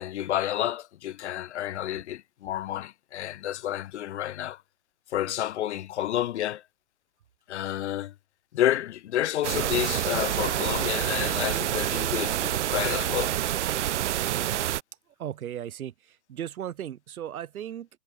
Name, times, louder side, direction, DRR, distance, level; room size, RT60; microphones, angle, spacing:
voice 1, 0.0-4.6 5.1-6.6 7.5-8.1 8.5-13.4, left 12 dB, 50° left, 0.8 m, -30 dB
sound 1, 9.4-14.8, right 12 dB, 55° right, 1.1 m, -27 dB
voice 2, 15.2-17.9, right 10 dB, 75° right, 3.0 m, -36 dB
supercardioid pair, 175°, 43 cm